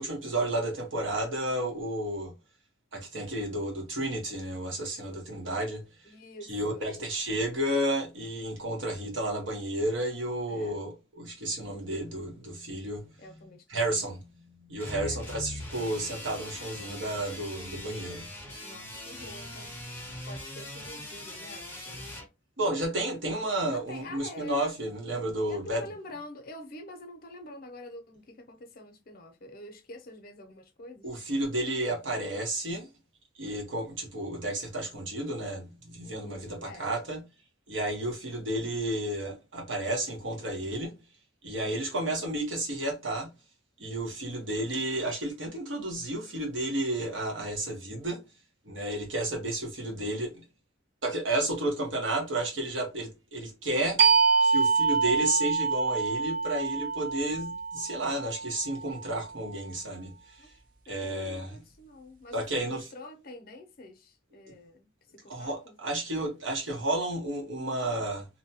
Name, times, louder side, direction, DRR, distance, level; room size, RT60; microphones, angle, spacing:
voice 1, 0.0-2.3 2.9-5.8 6.4-14.3 14.6-18.3 22.6-25.9 31.0-32.9 33.4-37.2 37.7-40.9 41.4-43.3 43.8-48.2 48.6-50.3 51.0-54.0 54.4-60.1 60.9-61.6 62.3-62.9 65.3-68.3, right 1 dB, 90° right, 1.1 m, -32 dB
voice 2, 6.1-6.9 10.5-10.8 13.2-13.6 15.0-15.3 18.6-19.7 20.3-22.0 23.7-24.8 25.5-31.1 36.0-36.9 60.4-60.5 60.9-64.9 65.2-66.0, left 1 dB, 50° left, 0.6 m, -46 dB
sound 1, 14.8-22.3, left 1 dB, 10° left, 0.6 m, -41 dB
sound 2, 54.0-59.3, right 4 dB, 45° right, 0.5 m, -26 dB
2.7 x 2.2 x 2.7 m
head